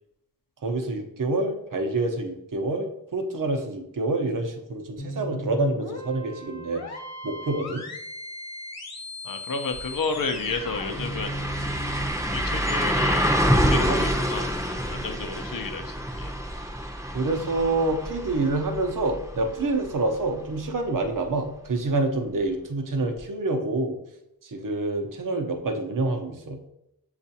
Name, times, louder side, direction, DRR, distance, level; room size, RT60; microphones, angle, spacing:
voice 1, 0.6-6.8 7.2-7.8 17.1-24.0 24.4-26.6, right 2 dB, 55° right, 3 dB, 0.7 m, -27 dB
sound 1, 5.0-12.1, equal, 45° left, 1.0 m, -37 dB
voice 2, 9.2-11.4 12.3-14.5 14.9-16.3, left 4 dB, 60° left, 7 dB, 0.6 m, -31 dB
sound 2, 9.7-9.8 10.1-19.9 20.3-20.4 23.2-23.3, equal, 10° right, 0.6 m, -27 dB
7.0 x 2.4 x 2.7 m, 0.82 s
wide cardioid pair, 55°, 38 cm